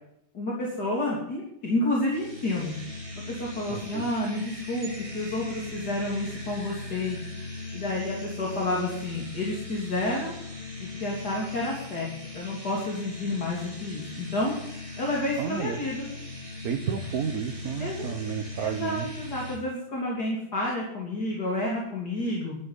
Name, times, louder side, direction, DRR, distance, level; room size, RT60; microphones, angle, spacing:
voice 1, 0.3-2.8 3.2-7.2 7.7-10.3 10.8-14.5 15.0-16.1 17.8-18.1 18.6-22.6, left 1 dB, 50° left, -3 dB, 3.7 m, -30 dB
sound 1, 2.1-19.6, left 2 dB, 15° right, 3.3 m, -39 dB
voice 2, 3.7-4.1 15.4-15.8 16.6-19.1, right 7 dB, 50° right, 7 dB, 1.5 m, -31 dB
13.0 x 9.6 x 9.7 m, 0.79 s
omnidirectional pair, 2.2 m